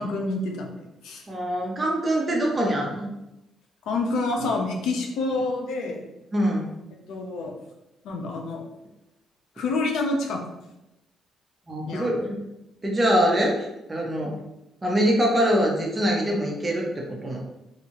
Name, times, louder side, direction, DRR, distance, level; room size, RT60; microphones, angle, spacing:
voice 1, 0.0-1.3 3.9-6.0 7.1-7.5 8.0-8.6 9.6-10.4 11.8-12.2, left 3 dB, 85° left, 1 dB, 0.5 m, -28 dB
voice 2, 1.3-3.1 6.3-6.7 11.7-12.4 12.8-14.3 14.8-17.4, equal, 25° right, -1 dB, 0.7 m, -24 dB
2.7 x 2.4 x 3.0 m, 0.91 s
cardioid pair, 90°, 0 cm